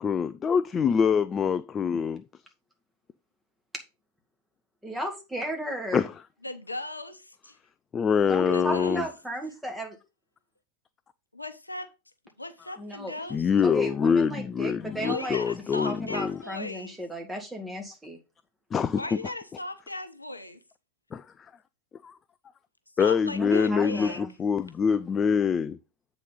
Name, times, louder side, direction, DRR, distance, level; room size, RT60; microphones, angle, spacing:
voice 1, 0.0-2.2 5.9-6.1 7.9-9.1 13.3-16.4 18.7-19.0 21.1-21.2 22.0-22.1 23.0-25.8, left 6 dB, 20° left, 0.4 m, -25 dB
voice 2, 4.8-6.0 8.3-10.0 12.8-13.1 13.6-15.4 15.8-18.2 23.4-24.3, equal, 5° right, 2.1 m, -34 dB
voice 3, 6.4-7.6 8.5-9.0 11.3-11.9 12.4-13.5 15.0-17.0 18.9-20.6 23.0-24.2, left 2 dB, 85° left, 0.8 m, -37 dB
8.1 x 4.1 x 5.5 m
figure-of-eight pair, 90°, 0 cm